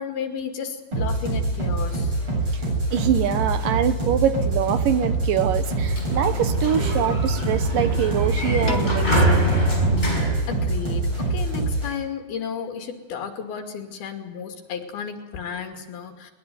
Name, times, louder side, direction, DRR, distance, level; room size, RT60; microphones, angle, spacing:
voice 1, 0.0-2.2 10.5-16.3, left 7 dB, 75° left, 5 dB, 4.4 m, -33 dB
sound 1, 0.9-11.9, right 2 dB, 35° right, 8.8 m, -25 dB
voice 2, 2.9-9.5, right 9 dB, 70° right, 10 dB, 2.6 m, -24 dB
Sliding door, 5.7-11.3, right 1 dB, 10° left, 5.1 m, -25 dB
Piano, 8.7-10.9, left 4 dB, 30° left, 1.7 m, -35 dB
21.0 x 20.5 x 9.5 m, 1.0 s
omnidirectional pair, 4.4 m